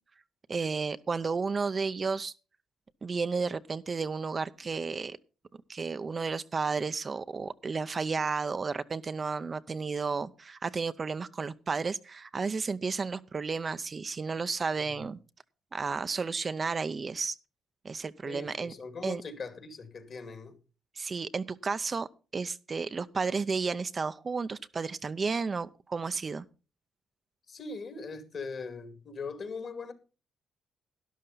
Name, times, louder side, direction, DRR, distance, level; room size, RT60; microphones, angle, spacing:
voice 1, 0.5-2.3 3.0-5.2 5.7-15.2 15.7-17.4 17.8-18.7 19.0-19.2 21.0-26.4, right 4 dB, 35° right, 0.6 m, -32 dB
voice 2, 18.3-20.6 27.5-29.9, left 4 dB, 50° left, 2.3 m, -40 dB
12.0 x 11.5 x 4.0 m
cardioid pair, 90°, 0 cm